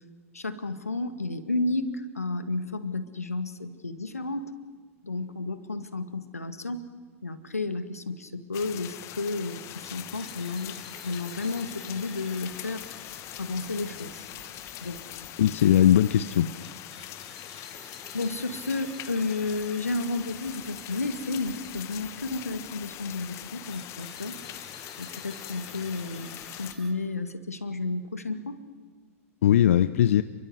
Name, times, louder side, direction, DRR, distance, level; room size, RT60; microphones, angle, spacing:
voice 1, 0.3-4.5 5.0-6.8 7.2-10.8 11.0-12.9 13.4-14.3 14.8-15.0 18.1-24.4 25.0-26.3 26.6-28.6, left 3 dB, 85° left, 10 dB, 1.9 m, -32 dB
sound 1, 8.5-26.7, left 14 dB, 40° left, 1.3 m, -42 dB
sound 2, 9.4-26.9, left 1 dB, ahead, 6.7 m, -51 dB
voice 2, 15.4-16.5 29.4-30.2, left 11 dB, 65° left, 14 dB, 0.7 m, -19 dB
29.0 x 23.0 x 8.1 m, 1.5 s
figure-of-eight pair, 95°, 8 cm